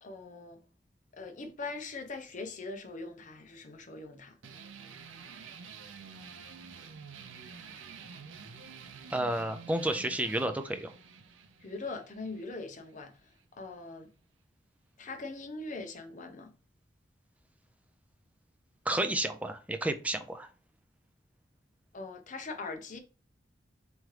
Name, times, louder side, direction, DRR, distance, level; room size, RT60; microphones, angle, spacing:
voice 1, 0.0-0.6 1.1-4.3 11.6-13.1 13.5-14.1 15.0-16.5 21.9-23.0, left 3 dB, 40° left, 0.6 m, -41 dB
sound 1, 4.4-13.5, right 5 dB, 85° right, 0.5 m, -49 dB
voice 2, 9.1-10.9 18.9-20.5, right 1 dB, 10° right, 0.4 m, -31 dB
3.6 x 3.0 x 3.2 m
head